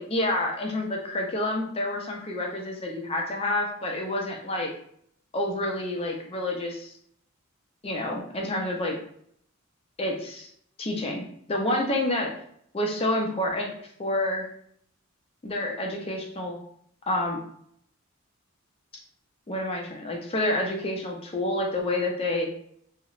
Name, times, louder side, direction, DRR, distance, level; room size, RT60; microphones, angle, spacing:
voice 1, 0.0-4.7 5.3-6.9 7.8-9.0 10.0-10.5 10.8-12.3 12.7-13.7 14.0-14.5 15.4-16.6 17.1-17.4 19.5-22.5, left 1 dB, 25° left, 1 dB, 0.4 m, -28 dB
2.8 x 2.0 x 2.3 m, 0.67 s
head